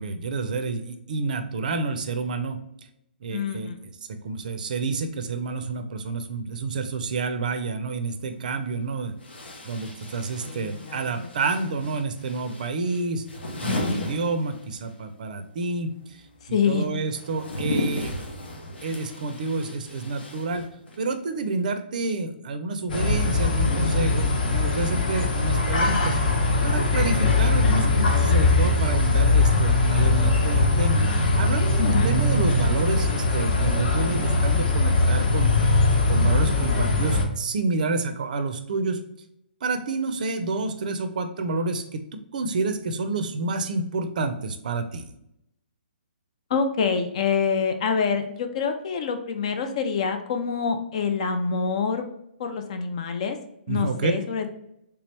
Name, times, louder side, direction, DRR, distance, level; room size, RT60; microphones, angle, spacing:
voice 1, 0.0-2.6 3.2-3.7 4.2-9.1 9.6-13.2 13.6-15.9 16.7-18.1 18.8-20.7 21.0-26.2 26.6-31.1 31.4-35.5 36.1-39.0 39.6-45.1 53.7-54.1, right 3 dB, 50° right, 8 dB, 0.5 m, -29 dB
voice 2, 3.3-3.8 10.4-11.3 13.6-14.0 16.5-16.8 31.8-32.1 46.5-52.1 52.4-53.4 53.7-54.5, left 6 dB, 35° left, 7 dB, 0.4 m, -26 dB
sound 1, 8.3-8.4 9.2-15.0 15.3-21.1, left 2 dB, 85° left, 1.0 m, -36 dB
sound 2, 22.9-37.2, left 3 dB, 55° left, 0.9 m, -21 dB
3.4 x 2.9 x 3.2 m, 0.80 s
hypercardioid pair, 165°, 6 cm